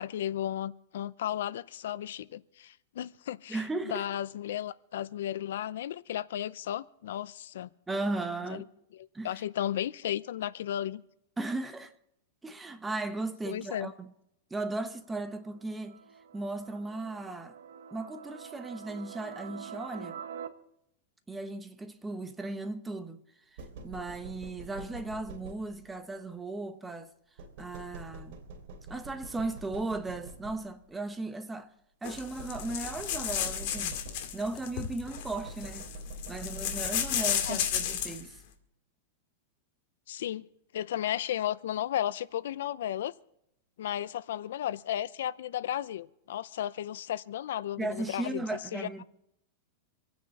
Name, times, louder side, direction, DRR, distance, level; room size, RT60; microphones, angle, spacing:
voice 1, 0.0-7.7 9.2-11.0 13.4-13.9 37.5-37.6 40.1-40.4 40.7-43.1 43.8-48.4 48.7-49.0, left 11 dB, 75° left, 0.6 m, -34 dB
voice 2, 3.5-4.0 7.9-8.7 9.1-9.4 11.4-11.9 12.4-14.1 14.5-16.0 16.3-17.5 17.9-20.2 21.3-23.2 23.8-27.1 27.6-28.4 28.9-31.7 32.0-34.0 34.3-35.9 36.3-38.4 47.8-49.0, right 2 dB, 10° right, 1.0 m, -36 dB
sound 1, 14.9-20.5, right 7 dB, 85° right, 1.3 m, -46 dB
sound 2, 23.6-26.0 27.4-31.0 32.4-34.6 35.2-38.2, right 1 dB, 55° right, 3.1 m, -45 dB
sound 3, 32.0-38.3, left 9 dB, 50° left, 2.1 m, -33 dB
26.5 x 9.7 x 4.2 m
supercardioid pair, 160°, 0 cm